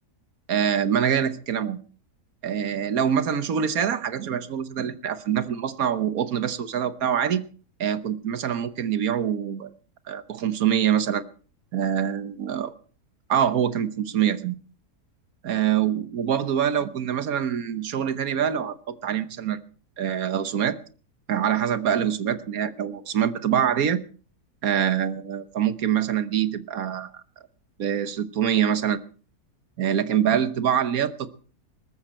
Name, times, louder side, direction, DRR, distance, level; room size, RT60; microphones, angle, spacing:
voice 1, 0.5-1.8 2.4-7.4 7.8-9.7 10.1-11.2 11.7-12.7 13.3-14.5 15.4-19.6 20.0-20.8 21.3-24.0 24.6-27.1 27.8-29.0 29.8-31.3, right 9 dB, 65° right, 13 dB, 1.4 m, -25 dB
19.5 x 13.5 x 4.3 m, 0.39 s
omnidirectional pair, 1.7 m